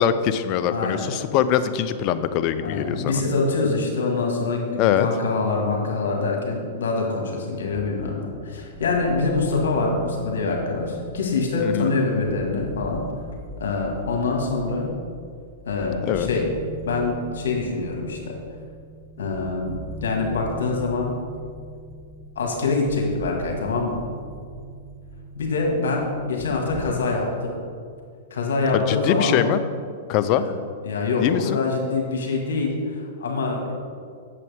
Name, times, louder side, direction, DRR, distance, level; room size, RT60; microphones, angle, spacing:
voice 1, 0.0-3.2 4.8-5.1 11.6-11.9 16.0-16.3 28.7-29.6 30.1-30.4 31.2-31.6, left 10 dB, 45° left, 12 dB, 0.4 m, -22 dB
voice 2, 0.7-1.1 2.6-13.0 13.6-14.9 15.7-16.5 16.8-18.4 19.2-21.2 22.4-24.0 25.4-27.6 28.3-29.4 30.4-30.5 30.8-33.7, left 3 dB, 75° left, 1 dB, 1.7 m, -25 dB
sound 1, 7.6-27.0, right 2 dB, 30° right, 0.9 m, -40 dB
8.4 x 7.2 x 3.5 m, 2.2 s
hypercardioid pair, 115°, 0 cm